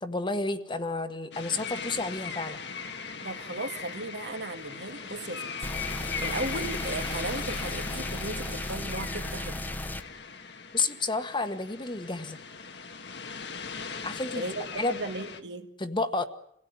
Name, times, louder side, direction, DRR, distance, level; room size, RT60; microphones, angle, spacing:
voice 1, 0.0-2.6 10.7-12.4 14.0-14.4 14.7-15.0 15.8-16.2, left 3 dB, 25° left, 9 dB, 1.4 m, -30 dB
sound 1, 1.3-15.4, left 5 dB, 70° left, 1.7 m, -39 dB
voice 2, 3.2-5.5 6.2-9.6 14.3-15.7, right 2 dB, 80° right, 6 dB, 2.3 m, -36 dB
sound 2, 5.6-10.0, left 1 dB, 10° left, 1.1 m, -35 dB
27.0 x 17.0 x 9.5 m, 0.73 s
head